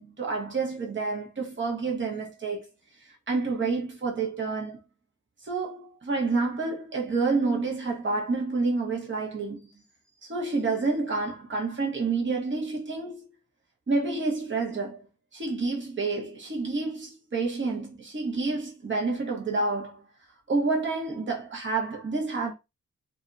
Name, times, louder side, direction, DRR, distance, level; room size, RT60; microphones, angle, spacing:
voice 1, 0.0-2.6 3.3-4.8 5.4-9.6 10.2-13.3 13.9-15.1 15.3-20.0 20.5-22.5, right 3 dB, 40° right, 1.1 m, -29 dB
2.7 x 2.3 x 3.8 m
cardioid pair, 80°, 31 cm